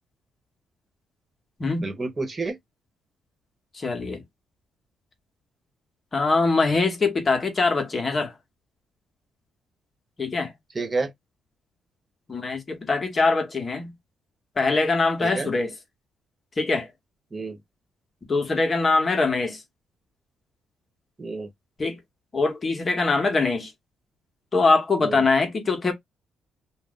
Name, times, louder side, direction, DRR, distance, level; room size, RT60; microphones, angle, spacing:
voice 1, 1.8-2.6 10.7-11.1 15.2-15.5 17.3-17.6 21.2-21.5 25.0-25.2, right 3 dB, 25° right, 1.0 m, -29 dB
voice 2, 3.7-4.2 6.1-8.3 10.2-10.5 12.3-13.9 14.6-15.7 16.6-16.9 18.3-19.6 21.8-22.0 22.3-23.7 24.5-25.9, left 3 dB, 35° left, 1.0 m, -23 dB
2.6 x 2.0 x 3.7 m
cardioid pair, 90°, 0 cm